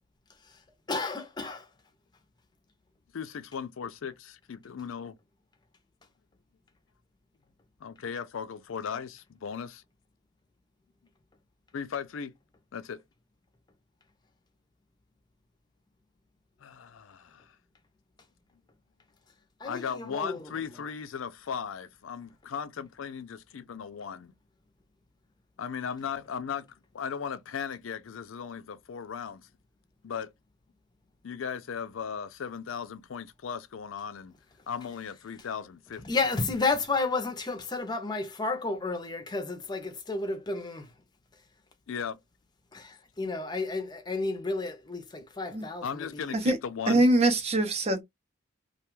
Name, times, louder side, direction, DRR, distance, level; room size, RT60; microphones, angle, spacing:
voice 1, 0.9-1.7 19.6-20.4 36.0-40.9 42.7-46.3, left 3 dB, 20° left, 0.6 m, -32 dB
voice 2, 3.1-5.2 7.8-9.8 11.7-12.3 12.7-13.0 16.6-17.6 19.6-24.3 25.6-26.7 26.9-29.5 30.0-30.3 31.2-34.3 34.7-36.0 41.9-42.2 45.8-47.1, left 7 dB, 80° left, 0.4 m, -37 dB
voice 3, 46.9-48.0, right 1 dB, 30° right, 0.6 m, -23 dB
2.4 x 2.3 x 3.0 m
head